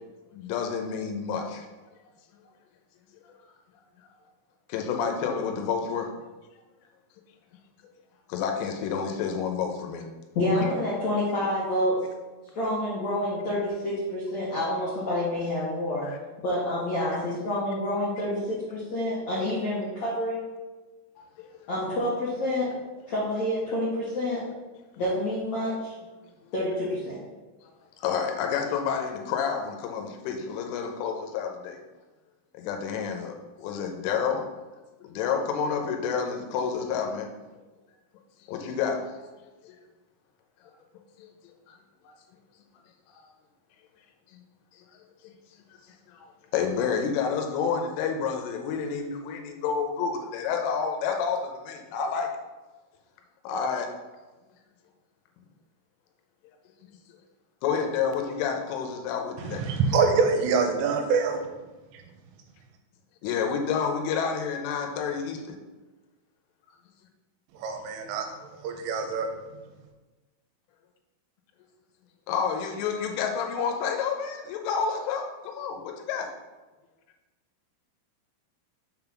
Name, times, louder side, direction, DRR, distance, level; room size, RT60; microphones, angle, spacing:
voice 1, 0.4-1.6 4.7-6.1 8.3-10.0 10.6-10.7 16.0-16.2 28.0-31.7 32.6-33.3 33.6-34.5 35.1-37.3 38.5-39.0 46.5-51.4 51.7-52.3 53.5-53.9 57.6-59.6 63.2-65.4 72.3-76.3, left 6 dB, 80° left, 4 dB, 3.2 m, -29 dB
voice 2, 10.3-12.1 12.5-16.0 16.4-20.4 21.7-22.7 23.1-24.4 25.0-25.9 26.5-27.2, left 1 dB, 65° left, -9 dB, 1.7 m, -28 dB
voice 3, 59.4-61.4 61.9-62.0 67.5-68.3 68.6-69.3, right 5 dB, 80° right, 4 dB, 3.3 m, -25 dB
7.2 x 4.0 x 5.9 m, 1.2 s
omnidirectional pair, 5.7 m